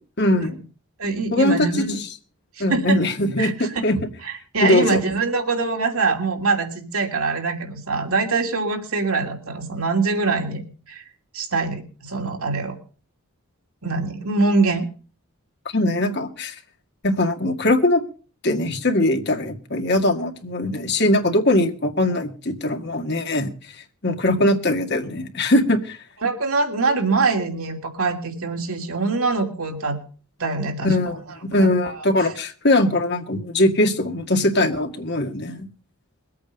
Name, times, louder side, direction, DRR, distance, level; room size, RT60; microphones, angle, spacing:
voice 1, 0.2-0.6 1.3-2.1 2.6-4.1 4.6-5.0 15.7-16.6 17.0-18.0 18.4-23.8 24.0-26.0 30.8-35.7, left 1 dB, 50° left, 5 dB, 1.9 m, -21 dB
voice 2, 1.0-2.0 2.6-3.0 3.4-3.8 4.2-10.6 10.9-11.0 11.3-12.8 13.8-14.9 26.2-30.0 30.4-30.9 31.5-32.0, right 3 dB, 75° right, 3 dB, 2.9 m, -23 dB
22.0 x 8.7 x 5.3 m, 0.38 s
head